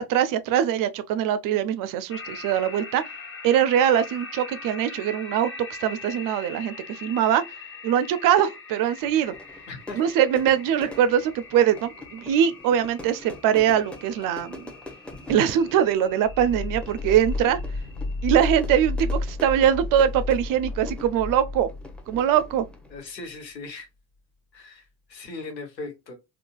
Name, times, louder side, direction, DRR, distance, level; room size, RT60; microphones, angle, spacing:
voice 1, 0.0-3.0 3.4-5.5 5.8-7.4 7.8-9.3 9.9-14.7 15.3-17.6 18.2-21.7 22.1-22.7, right 9 dB, 45° right, 0.5 m, -22 dB
sound 1, 2.1-18.8, left 4 dB, 25° left, 1.0 m, -43 dB
Fire / Fireworks, 9.0-23.0, left 2 dB, ahead, 0.7 m, -44 dB
voice 2, 9.7-10.0 22.9-23.9 24.5-24.8 25.1-26.1, left 3 dB, 85° left, 0.9 m, -38 dB
sound 2, 16.3-23.0, left 2 dB, 55° left, 0.7 m, -32 dB
3.7 x 2.3 x 2.2 m
figure-of-eight pair, 50°, 50 cm